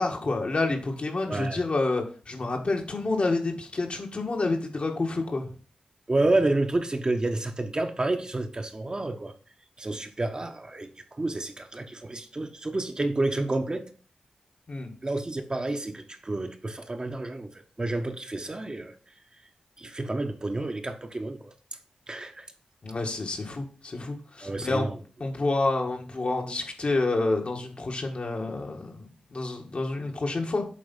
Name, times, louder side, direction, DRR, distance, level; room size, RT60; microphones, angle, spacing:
voice 1, 0.0-5.5 14.7-14.9 22.8-24.9 25.2-30.7, left 2 dB, 55° left, 1.8 m, -28 dB
voice 2, 1.3-1.6 6.1-9.3 9.8-10.9 11.2-13.8 15.0-18.9 19.8-21.5 22.1-22.5 24.4-25.0, right 2 dB, 35° right, 1.2 m, -29 dB
8.5 x 3.5 x 5.5 m
cardioid pair, 40°, 2 cm